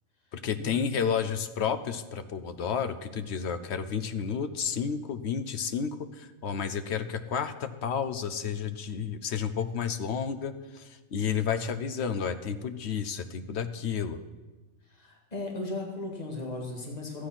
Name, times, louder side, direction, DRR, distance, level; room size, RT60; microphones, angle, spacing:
voice 1, 0.3-14.2, left 7 dB, 60° left, 10 dB, 0.9 m, -31 dB
voice 2, 14.9-17.3, left 2 dB, 30° left, 0 dB, 2.1 m, -36 dB
13.0 x 8.8 x 5.8 m, 1.2 s
omnidirectional pair, 1.4 m